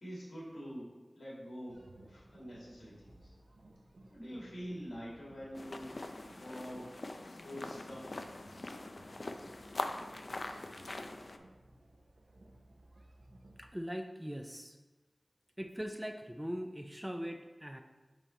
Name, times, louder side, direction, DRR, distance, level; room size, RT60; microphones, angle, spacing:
voice 1, 0.0-3.3 4.1-6.0 6.4-6.9 7.4-8.2, equal, 80° left, -6 dB, 1.9 m, -46 dB
sound 1, 1.7-13.7, right 1 dB, 85° right, 0.7 m, -59 dB
Walking on a Gravel Path by the Sea, 5.5-11.4, left 2 dB, 60° left, 0.4 m, -43 dB
voice 2, 13.6-14.8 15.6-17.8, equal, 10° right, 5 dB, 0.4 m, -41 dB
7.8 x 3.1 x 4.2 m, 1.2 s
wide cardioid pair, 45°, 0 cm